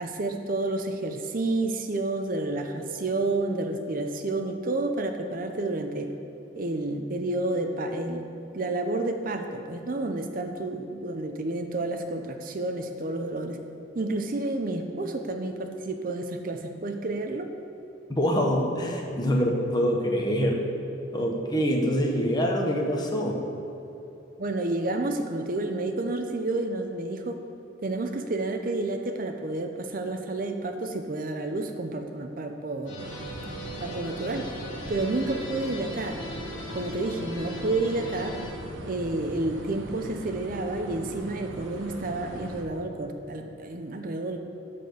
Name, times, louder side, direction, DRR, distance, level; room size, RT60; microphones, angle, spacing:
voice 1, 0.0-6.1 6.5-8.2 8.5-13.6 13.9-17.5 24.4-27.4 27.8-33.1 33.8-34.5 34.9-36.2 36.7-38.3 38.9-44.4, right 2 dB, 45° right, 5 dB, 0.6 m, -30 dB
voice 2, 18.1-20.6 21.1-23.3, equal, 20° left, 1 dB, 1.1 m, -25 dB
sound 1, 32.9-38.5, left 1 dB, 90° left, 2.1 m, -39 dB
sound 2, 33.0-42.6, right 1 dB, 90° right, 1.1 m, -40 dB
12.5 x 4.2 x 6.8 m, 3.0 s
head